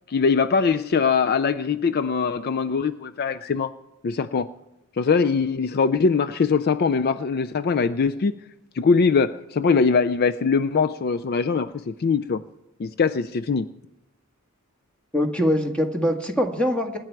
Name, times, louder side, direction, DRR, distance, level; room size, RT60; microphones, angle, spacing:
voice 1, 0.1-3.7 4.0-4.5 5.0-8.4 8.8-12.4 12.8-13.7, left 5 dB, 50° left, 0.4 m, -22 dB
voice 2, 15.1-17.0, equal, 5° left, 1.6 m, -23 dB
24.5 x 10.0 x 4.6 m
head